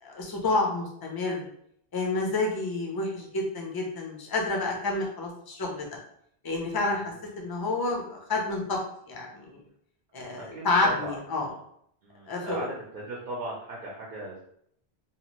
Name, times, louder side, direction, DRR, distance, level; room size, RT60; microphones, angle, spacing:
voice 1, 0.0-1.5 1.9-5.9 6.4-8.8 9.1-9.6 10.1-11.5 12.3-12.6, left 2 dB, 30° left, 0 dB, 0.5 m, -29 dB
voice 2, 10.3-11.6 12.0-14.4, right 1 dB, 60° right, -4 dB, 0.8 m, -38 dB
2.8 x 2.4 x 3.0 m, 0.70 s
omnidirectional pair, 1.0 m